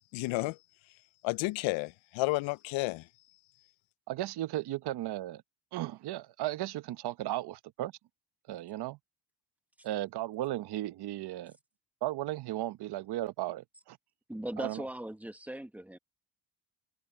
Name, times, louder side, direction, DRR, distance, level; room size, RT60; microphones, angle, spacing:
voice 1, 0.1-0.6 1.2-3.1, left 22 dB, 85° left, 0.6 m, -31 dB
voice 2, 4.1-5.4 5.7-7.9 8.5-9.0 9.8-11.5 12.0-14.0 14.6-14.8, right 15 dB, 60° right, 0.9 m, -35 dB
voice 3, 14.3-16.0, right 1 dB, 5° right, 1.0 m, -39 dB
cardioid pair, 120°, 45 cm